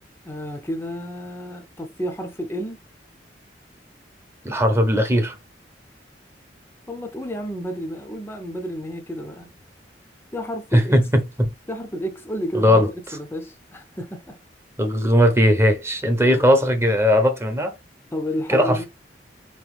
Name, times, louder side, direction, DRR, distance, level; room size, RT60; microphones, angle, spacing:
voice 1, 0.2-2.8 6.9-9.5 10.3-11.0 11.7-12.9 13.1-14.4 16.3-16.5 18.1-18.9, equal, 15° left, 0.6 m, -31 dB
voice 2, 4.4-5.4 10.7-11.5 12.5-12.9 14.8-17.7 18.5-18.9, equal, 15° right, 0.8 m, -18 dB
4.5 x 3.0 x 3.3 m
head